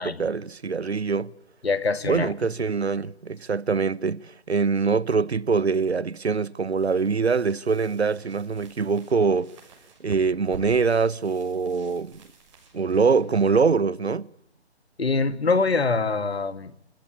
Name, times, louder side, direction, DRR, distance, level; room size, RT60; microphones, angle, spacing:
voice 1, 0.0-1.3 2.0-9.5 10.0-12.2 12.7-14.3, right 5 dB, 70° right, 1.1 m, -24 dB
voice 2, 1.6-2.3 15.0-16.7, left 4 dB, 65° left, 2.2 m, -24 dB
sound 1, 6.7-14.4, right 4 dB, 25° right, 6.6 m, -50 dB
26.5 x 22.5 x 8.7 m
figure-of-eight pair, 150°, 34 cm